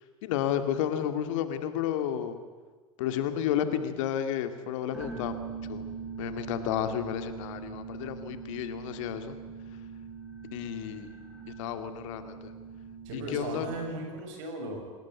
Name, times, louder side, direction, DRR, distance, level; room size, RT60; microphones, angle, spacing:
voice 1, 0.2-2.4 3.0-5.4 5.7-5.8 6.2-9.4 10.5-11.1 11.6-12.5 13.1-13.7, left 10 dB, 60° left, 9 dB, 2.2 m, -31 dB
sound 1, 4.9-14.2, right 5 dB, 5° right, 5.8 m, -42 dB
voice 2, 13.1-14.8, right 2 dB, 60° right, 3 dB, 7.1 m, -36 dB
26.0 x 19.0 x 8.3 m, 1.4 s
hypercardioid pair, 85°, 18 cm